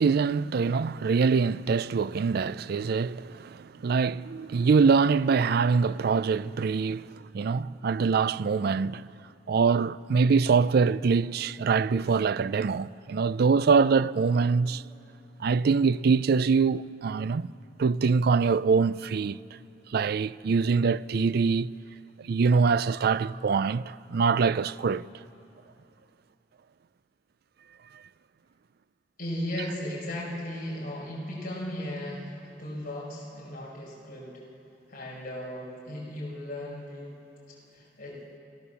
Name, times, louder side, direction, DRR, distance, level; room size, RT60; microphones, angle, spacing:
voice 1, 0.0-9.1 9.5-14.8 15.4-17.5 17.8-19.4 19.9-21.7 22.3-25.0, right 5 dB, 55° right, 0.4 m, -24 dB
voice 2, 29.2-34.4 34.9-37.1 37.5-38.2, left 1 dB, 50° left, 5.7 m, -36 dB
28.5 x 15.5 x 7.0 m
head